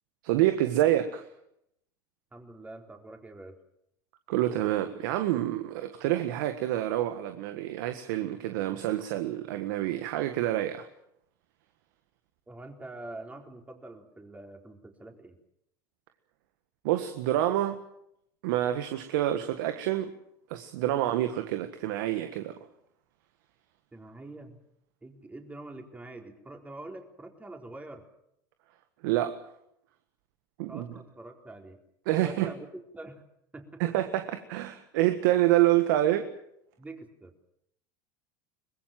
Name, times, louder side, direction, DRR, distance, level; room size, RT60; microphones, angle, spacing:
voice 1, 0.2-1.3 4.3-10.9 16.8-17.8 18.4-20.1 20.5-22.6 29.0-29.4 30.6-30.9 32.1-32.5 33.8-36.3, right 14 dB, 75° right, 8 dB, 1.6 m, -27 dB
voice 2, 2.3-3.6 12.5-15.4 23.9-24.6 25.0-28.0 30.7-31.8 32.2-32.6 32.9-33.2 33.5-33.8 36.8-37.3, right 2 dB, 15° right, 3 dB, 4.1 m, -45 dB
24.0 x 20.5 x 7.6 m, 0.78 s
hypercardioid pair, 95°, 11 cm